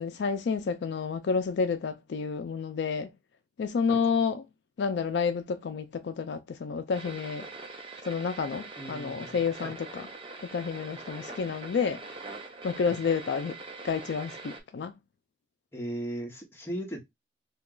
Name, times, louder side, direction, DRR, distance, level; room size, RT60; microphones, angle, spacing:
voice 1, 0.0-3.1 3.6-4.4 4.8-7.5 8.1-10.1 10.4-12.0 12.6-13.6 13.8-14.9, left 5 dB, 70° left, 0.4 m, -30 dB
sound 1, 6.9-14.6, right 3 dB, 30° right, 0.7 m, -43 dB
voice 2, 8.8-9.7 12.8-13.0 15.7-17.0, right 1 dB, 15° left, 0.9 m, -37 dB
2.8 x 2.3 x 3.7 m
head